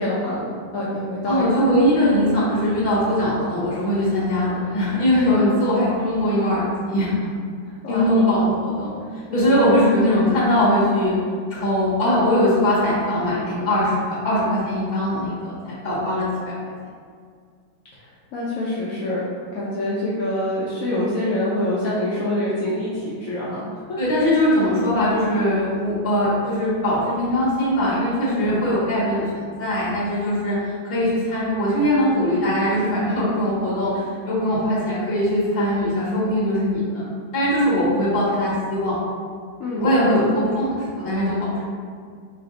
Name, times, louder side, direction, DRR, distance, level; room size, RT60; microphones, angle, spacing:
voice 1, 0.0-1.7 5.3-5.5 7.6-8.3 9.3-9.5 17.9-19.2 19.5-24.3 28.4-28.6 39.6-40.1, left 1 dB, 80° left, -7 dB, 0.7 m, -26 dB
voice 2, 1.3-7.3 7.9-8.9 9.3-11.1 11.5-13.9 14.2-16.3 24.0-30.5 30.8-37.0 37.3-39.0 39.8-41.6, left 1 dB, 35° left, -8 dB, 1.2 m, -21 dB
3.2 x 2.5 x 3.8 m, 2.1 s
omnidirectional pair, 2.0 m